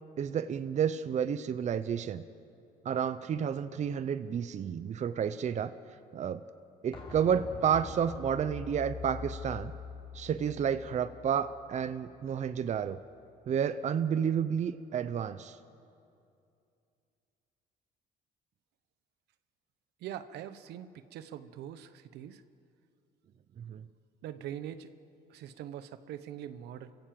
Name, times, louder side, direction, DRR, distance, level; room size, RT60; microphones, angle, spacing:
voice 1, 0.2-2.2 2.8-5.7 6.1-6.4 6.8-9.7 10.1-13.0 13.5-15.6 23.6-23.8, right 8 dB, 45° right, 13 dB, 0.8 m, -31 dB
sound 1, 6.9-12.6 12.9-13.0, left 4 dB, 30° left, 4.1 m, -44 dB
voice 2, 20.0-22.4 24.2-24.9 25.3-26.9, right 10 dB, 80° right, 12 dB, 1.1 m, -43 dB
29.0 x 16.0 x 7.8 m, 2.6 s
cardioid pair, 110°, 17 cm